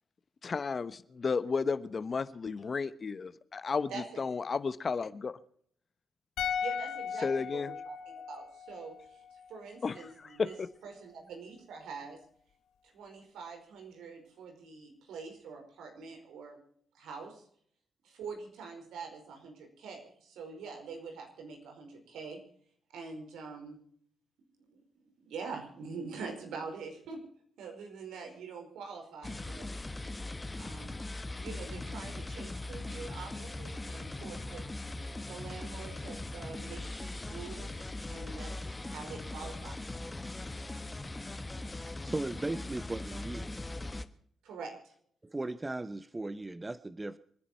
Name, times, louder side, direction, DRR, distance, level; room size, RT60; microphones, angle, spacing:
voice 1, 0.4-5.4 7.2-7.8 9.8-10.7, left 5 dB, 45° left, 1.0 m, -33 dB
voice 2, 3.9-4.2 6.6-10.5 10.8-12.2 12.9-16.6 16.9-17.4 18.0-22.4 22.9-23.8 24.6-24.8 25.2-27.2 27.6-29.7 30.6-31.0 31.4-34.6 35.3-38.5 38.8-39.8 44.4-44.9, right 5 dB, 80° right, 4.9 m, -45 dB
sound 1, 6.4-9.6 9.8-10.0, left 7 dB, 85° left, 1.6 m, -37 dB
sound 2, 29.2-44.1, left 2 dB, 25° left, 1.4 m, -40 dB
voice 3, 42.0-43.5 45.2-47.2, right 2 dB, 25° right, 0.9 m, -37 dB
26.5 x 10.5 x 4.5 m
supercardioid pair, 50°, 0 cm